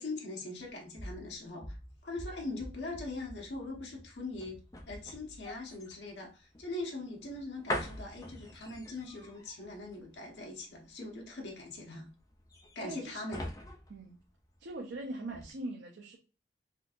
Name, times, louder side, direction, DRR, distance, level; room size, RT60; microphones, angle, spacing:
voice 1, 0.0-1.8 2.0-4.6 4.9-12.1 12.7-13.4, left 2 dB, 80° left, 1.0 m, -41 dB
sound 1, 0.6-15.0 15.3-15.5, left 1 dB, 20° left, 0.5 m, -44 dB
voice 2, 12.8-13.2 13.9-14.2 14.6-16.2, right 2 dB, 85° right, 0.5 m, -41 dB
3.8 x 2.6 x 2.4 m
head